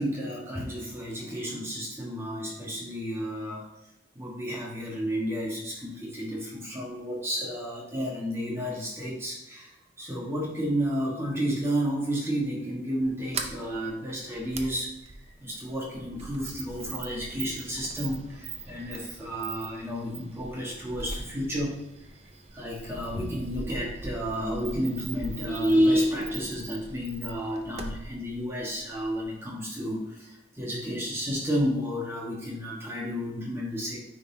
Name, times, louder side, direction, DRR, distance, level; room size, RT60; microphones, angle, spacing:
voice 1, 0.0-3.7 4.1-14.9 15.4-21.8 22.5-34.0, equal, 15° right, -4 dB, 1.5 m, -31 dB
Sliding door, 13.0-29.4, right 3 dB, 35° right, 0.6 m, -41 dB
9.3 x 4.1 x 2.8 m, 0.91 s
head